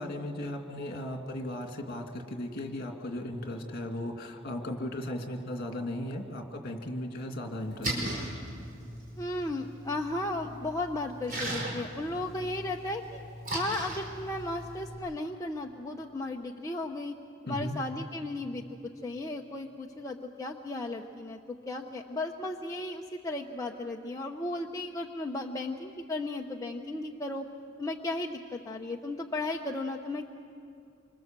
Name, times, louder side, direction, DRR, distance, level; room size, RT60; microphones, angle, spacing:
voice 1, 0.0-8.2 17.5-17.8, left 1 dB, 50° left, 3 dB, 2.5 m, -36 dB
Splash splatter, 7.6-14.9, right 1 dB, 45° right, 5.3 m, -38 dB
voice 2, 9.2-13.2 13.5-17.2 17.4-18.6 19.0-27.5 27.8-30.3, left 2 dB, 15° left, 0 dB, 0.8 m, -35 dB
26.5 x 25.0 x 7.5 m, 2.4 s
head